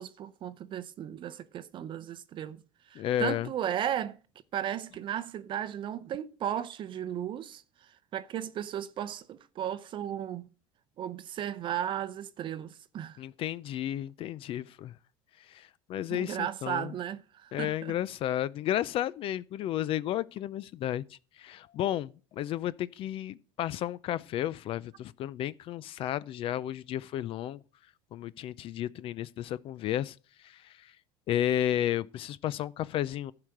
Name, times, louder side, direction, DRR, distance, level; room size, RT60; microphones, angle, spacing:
voice 1, 0.0-2.6 2.9-4.2 4.5-7.6 8.1-10.5 11.0-13.2 16.1-18.0, right 10 dB, 45° right, 0.6 m, -35 dB
voice 2, 3.0-3.5 13.2-14.9 15.5-16.9 17.5-21.0 21.4-27.6 28.1-30.2 30.4-30.9 31.3-33.3, left 12 dB, 50° left, 0.5 m, -32 dB
12.0 x 4.9 x 7.8 m
supercardioid pair, 110°, 12 cm